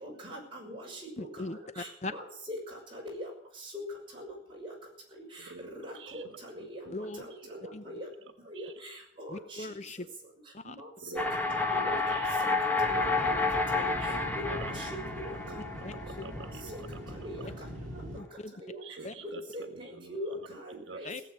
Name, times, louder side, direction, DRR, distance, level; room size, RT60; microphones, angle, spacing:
voice 1, 0.0-1.3 1.8-2.6 2.9-3.3 4.2-4.3 4.6-4.7 5.8-6.3 6.6-6.8 7.6-8.0 8.5-8.9 9.2-9.6 10.6-11.2 11.7-11.9 12.8-13.3 13.8-13.9 14.3-14.9 15.1-15.3 17.2-17.4 18.6-18.7 19.2-19.6 20.1-21.1, equal, 25° right, -3 dB, 6.5 m, -41 dB
voice 2, 1.2-2.1 6.9-7.2 7.7-7.8 9.3-10.1 10.5-10.7 15.8-16.2 18.2-18.5 19.0-19.1 21.0-21.2, left 2 dB, 35° left, 11 dB, 0.6 m, -39 dB
voice 3, 6.6-7.0 7.4-7.6 8.5-8.7 11.0-14.9 15.5-16.7 18.8-19.4 19.7-20.2 20.7-21.1, right 4 dB, 85° right, 7 dB, 1.3 m, -46 dB
sound 1, 11.2-17.2, left 3 dB, 10° left, 1.3 m, -30 dB
sound 2, 12.8-18.2, equal, 45° right, 4.3 m, -42 dB
17.5 x 7.8 x 9.9 m, 0.67 s
head